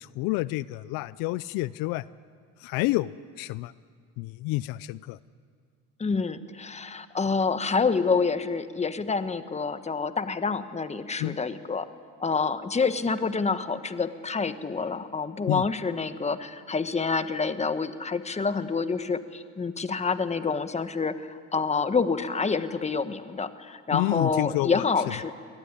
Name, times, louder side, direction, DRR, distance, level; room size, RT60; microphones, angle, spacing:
voice 1, 0.0-2.0 2.6-3.7 4.2-5.2 11.2-11.4 15.5-15.6 23.9-24.8, left 19 dB, 80° left, 18 dB, 0.6 m, -29 dB
voice 2, 6.0-11.9 12.2-25.3, left 4 dB, 20° left, 11 dB, 1.2 m, -27 dB
23.0 x 18.5 x 9.8 m, 2.1 s
supercardioid pair, 100°, 34 cm